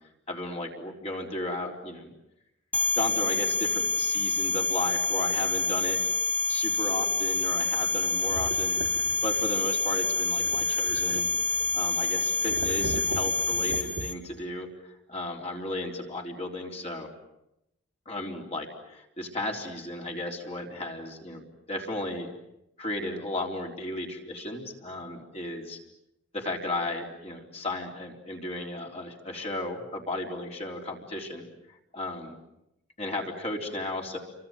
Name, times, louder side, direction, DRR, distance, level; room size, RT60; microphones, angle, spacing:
voice 1, 0.3-2.1 2.9-6.0 6.5-8.8 9.2-11.3 11.7-17.1 18.1-21.4 21.7-22.3 22.8-25.8 26.3-32.4 33.0-34.2, left 2 dB, 30° left, 0 dB, 3.9 m, -34 dB
sound 1, 2.7-14.1, left 4 dB, 5° left, 1.6 m, -27 dB
sound 2, 8.2-9.6 10.4-11.9 12.4-14.4, right 2 dB, 65° right, 1.1 m, -39 dB
29.5 x 25.0 x 8.0 m, 0.85 s
head